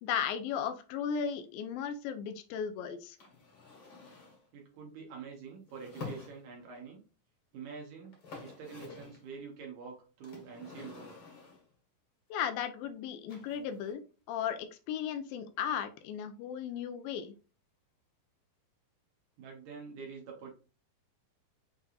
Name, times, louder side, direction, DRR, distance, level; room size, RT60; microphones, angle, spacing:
voice 1, 0.0-3.2 12.3-14.0 14.3-17.3, left 8 dB, 80° left, 9 dB, 2.1 m, -35 dB
sound 1, 3.2-4.5 5.7-6.8 7.7-7.8 8.0-9.3 10.2-11.7 13.3-13.9, left 4 dB, 50° left, 1.6 m, -48 dB
voice 2, 4.5-7.0 7.5-8.1 8.4-11.2 19.4-20.5, right 5 dB, 70° right, 0 dB, 2.2 m, -46 dB
6.6 x 3.4 x 2.3 m, 0.34 s
omnidirectional pair, 4.4 m